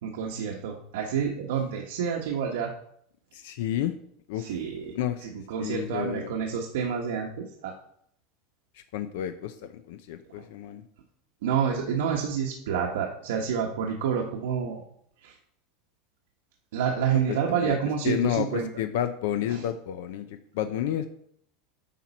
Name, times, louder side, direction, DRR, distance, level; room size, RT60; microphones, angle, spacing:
voice 1, 0.0-2.7 4.4-7.8 11.4-14.8 15.2-15.4 16.7-18.7 19.5-19.7, right 7 dB, 80° right, 0 dB, 1.1 m, -29 dB
voice 2, 3.3-3.9 4.3-4.5 4.9-5.2 5.6-6.3 8.9-10.8 17.1-17.8 18.0-21.1, left 11 dB, 65° left, 10 dB, 0.6 m, -31 dB
9.3 x 5.9 x 4.2 m, 0.67 s
supercardioid pair, 175°, 0 cm